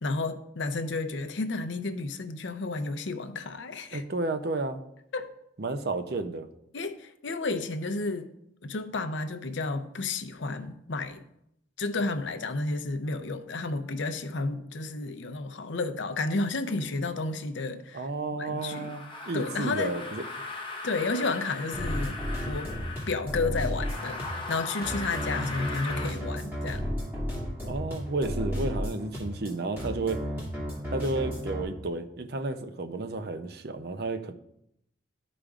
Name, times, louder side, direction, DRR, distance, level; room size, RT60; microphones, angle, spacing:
voice 1, 0.0-4.0 5.1-5.3 6.7-8.3 8.6-11.2 11.8-18.1 18.3-18.9 19.3-19.9 20.8-22.7 23.1-24.2 24.5-26.8, left 3 dB, 70° left, 8 dB, 0.6 m, -32 dB
voice 2, 3.9-4.8 5.6-6.5 17.9-20.3 27.6-30.2 30.9-34.3, right 2 dB, 50° right, 8 dB, 0.6 m, -32 dB
sound 1, 18.6-23.2 23.7-26.2, left 3 dB, 25° left, 0.8 m, -38 dB
sound 2, 21.7-31.6, equal, 10° right, 2.3 m, -33 dB
12.5 x 5.0 x 2.4 m, 0.79 s
head